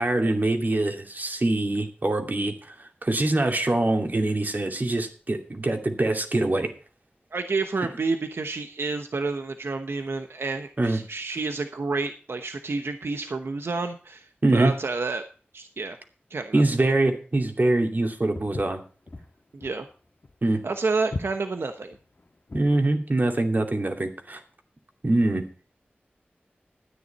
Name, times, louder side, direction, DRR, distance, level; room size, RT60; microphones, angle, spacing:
voice 1, 0.0-2.7 3.0-6.7 10.8-11.0 14.4-14.7 16.5-18.8 20.4-20.6 22.5-24.4 25.0-25.4, right 2 dB, 50° right, 4 dB, 2.5 m, -24 dB
voice 2, 7.3-15.2 15.5-16.0 16.3-16.9 19.5-19.9 20.6-22.0, right 3 dB, 85° right, 7 dB, 1.0 m, -29 dB
Walk footsteps, 18.3-22.8, left 2 dB, 55° left, 1.6 m, -38 dB
13.0 x 9.7 x 4.2 m, 0.40 s
wide cardioid pair, 55°, 4 cm